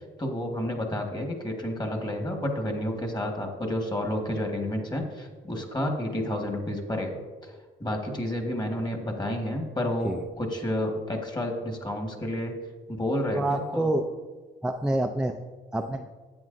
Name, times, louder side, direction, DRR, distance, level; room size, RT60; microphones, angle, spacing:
voice 1, 0.2-12.5 12.9-14.0, left 1 dB, 20° left, 2 dB, 1.6 m, -30 dB
voice 2, 13.3-14.1 14.6-15.4 15.7-16.1, right 1 dB, 5° right, 5 dB, 0.4 m, -27 dB
10.5 x 8.3 x 2.6 m, 1.4 s
cardioid pair, 90°, 20 cm